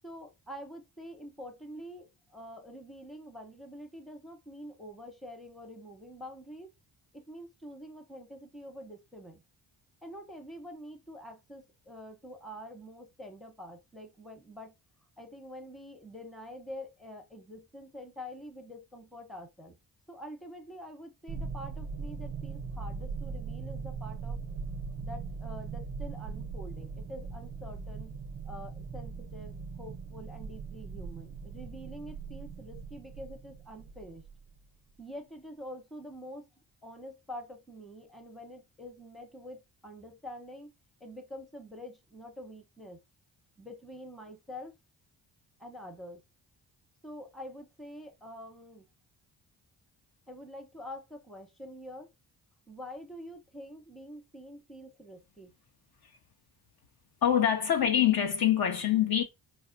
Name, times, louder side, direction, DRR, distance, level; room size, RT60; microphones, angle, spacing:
voice 1, 0.0-6.7 7.1-9.4 10.0-14.7 15.2-19.8 20.1-24.4 25.0-28.1 28.4-34.2 35.0-36.5 36.8-40.7 41.0-43.0 43.6-44.7 45.6-46.2 47.0-48.9 50.3-52.1 52.7-55.5, equal, ahead, 0.8 m, -46 dB
sound 1, 21.3-34.6, right 5 dB, 30° right, 0.4 m, -40 dB
voice 2, 57.2-59.2, left 10 dB, 55° left, 0.6 m, -25 dB
4.0 x 2.1 x 2.5 m
supercardioid pair, 50°, 47 cm